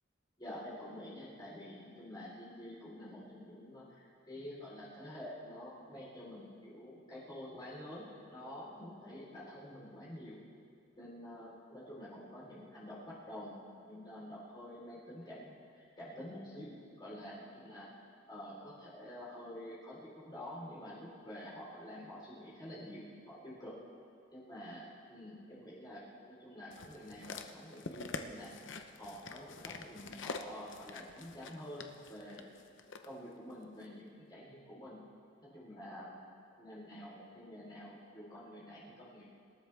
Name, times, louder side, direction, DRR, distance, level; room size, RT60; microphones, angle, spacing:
voice 1, 0.4-10.4 10.9-13.6 13.9-17.9 18.3-23.7 24.3-28.5 28.9-32.5 33.0-35.0 35.4-36.2 36.6-39.3, left 1 dB, 20° left, -8 dB, 3.7 m, -48 dB
sound 1, 26.7-33.1 33.8-33.9, left 4 dB, 75° left, 0.8 m, -46 dB
26.0 x 13.0 x 3.4 m, 2.4 s
head